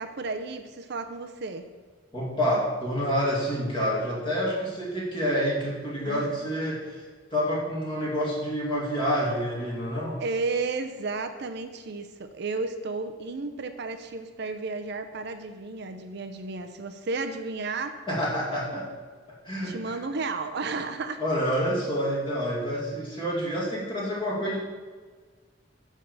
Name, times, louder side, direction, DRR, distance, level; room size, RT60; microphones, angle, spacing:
voice 1, 0.0-1.7 6.0-6.2 10.2-18.0 19.6-21.2, right 3 dB, 60° right, 8 dB, 0.6 m, -33 dB
voice 2, 2.1-7.0 7.3-10.2 18.1-18.9 19.3-20.0 21.2-24.6, equal, 25° left, -4 dB, 2.4 m, -28 dB
10.5 x 3.7 x 6.9 m, 1.5 s
head